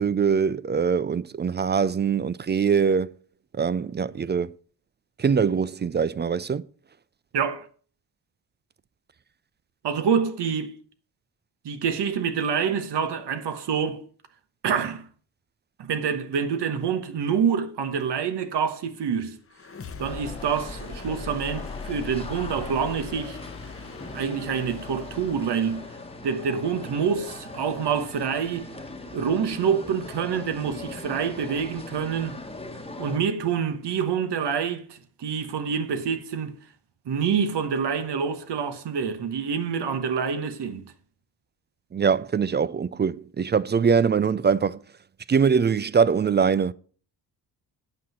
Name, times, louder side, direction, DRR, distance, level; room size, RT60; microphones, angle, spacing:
voice 1, 0.0-3.1 3.5-4.5 5.2-6.6 41.9-44.8 45.3-46.7, right 6 dB, 25° right, 0.3 m, -23 dB
voice 2, 7.3-7.7 9.8-10.8 11.6-14.0 14.6-15.1 15.8-19.4 20.0-23.4 24.1-25.9 26.2-28.7 29.1-32.4 33.0-36.5 37.1-40.9, right 7 dB, 70° right, 1.2 m, -27 dB
sound 1, 19.5-29.3, left 5 dB, 30° left, 0.9 m, -41 dB
sound 2, 20.0-33.2, left 2 dB, 15° left, 1.2 m, -40 dB
8.8 x 6.0 x 5.6 m
cardioid pair, 65°, 43 cm